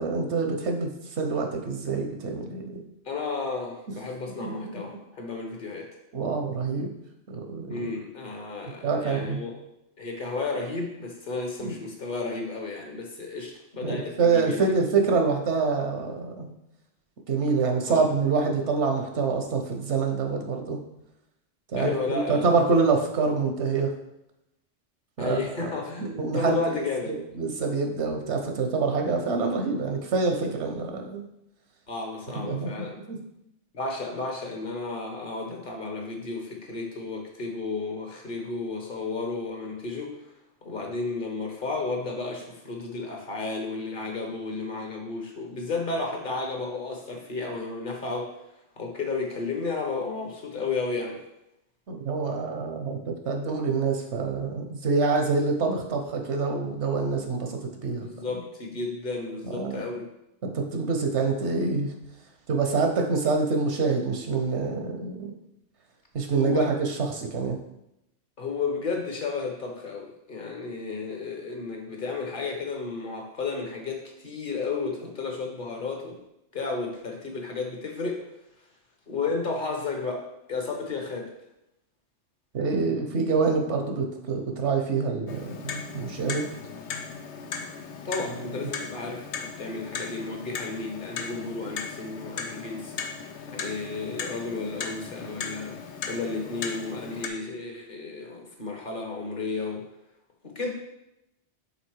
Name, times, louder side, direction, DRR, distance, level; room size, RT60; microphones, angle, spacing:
voice 1, 0.0-2.8 4.4-5.0 6.1-6.9 7.3-7.8 8.8-9.4 11.6-11.7 13.8-16.5 17.3-20.8 21.7-23.9 25.2-25.7 26.0-26.7 27.1-31.2 32.4-33.2 51.9-58.1 59.5-59.8 60.4-61.9 62.5-65.3 66.1-67.6 82.5-86.5 88.6-88.7, right 4 dB, 75° right, 3 dB, 1.2 m, -26 dB
voice 2, 3.1-5.9 7.7-9.5 10.0-14.7 17.8-18.1 21.7-22.5 25.2-26.0 26.3-27.2 31.9-32.9 33.7-40.1 40.6-48.3 48.8-51.2 58.0-60.0 66.4-66.7 68.4-76.2 76.5-78.2 79.1-80.2 80.5-81.3 88.0-92.9 93.5-95.7 96.1-99.8 100.4-100.7, left 4 dB, 50° left, 1 dB, 1.2 m, -32 dB
Clock, 85.3-97.3, left 5 dB, 75° left, 0.9 m, -37 dB
5.8 x 3.9 x 4.6 m, 0.85 s
omnidirectional pair, 1.2 m